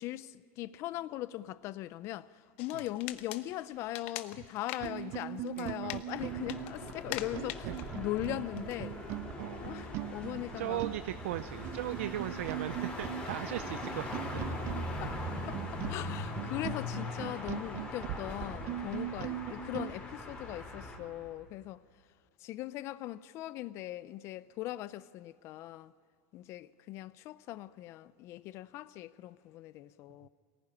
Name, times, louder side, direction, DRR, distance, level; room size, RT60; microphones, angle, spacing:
voice 1, 0.0-2.3 2.6-9.0 9.6-10.8 15.0-15.1 15.5-21.8 22.4-25.9 26.3-30.3, left 15 dB, 40° left, 0.5 m, -40 dB
sound 1, 2.6-9.2, left 14 dB, 70° left, 1.1 m, -46 dB
sound 2, 4.3-4.5 4.8-19.9, right 13 dB, 40° right, 0.6 m, -40 dB
voice 2, 5.6-5.9 7.7-7.8 9.4-9.7 10.6-14.4, right 14 dB, 85° right, 0.6 m, -38 dB
City at Night Ambience, 6.1-21.0, left 2 dB, 15° left, 4.2 m, -41 dB
23.5 x 19.0 x 9.8 m
supercardioid pair, 155°, 7 cm